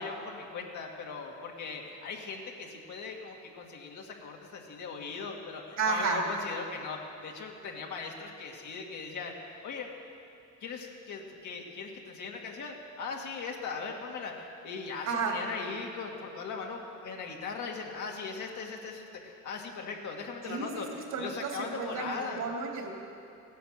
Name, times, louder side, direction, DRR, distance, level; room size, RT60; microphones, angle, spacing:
voice 1, 0.0-9.9 10.6-22.4, left 5 dB, 75° left, 0 dB, 2.3 m, -39 dB
voice 2, 5.8-6.2 15.1-15.4 20.4-22.9, right 4 dB, 75° right, 0 dB, 3.1 m, -32 dB
16.5 x 10.0 x 7.8 m, 2.6 s
cardioid pair, 90°, 30 cm